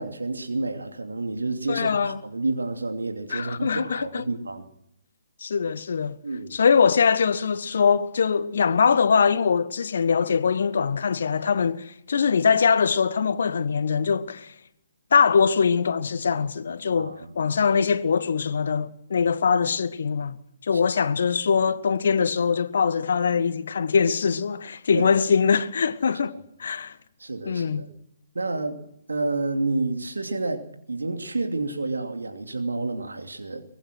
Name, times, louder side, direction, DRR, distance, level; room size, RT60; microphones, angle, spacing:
voice 1, 0.0-4.7 6.2-6.6 17.0-17.3 20.7-20.8 24.9-25.1 27.2-27.9 28.3-28.8 29.1-33.6, right 2 dB, 75° right, 2.8 m, -29 dB
voice 2, 1.7-2.2 3.3-4.2 5.4-6.2 6.5-14.5 15.1-20.4 20.6-27.0 27.4-27.8, left 6 dB, 60° left, 1.5 m, -22 dB
24.0 x 20.5 x 6.2 m
figure-of-eight pair, 135°, 0 cm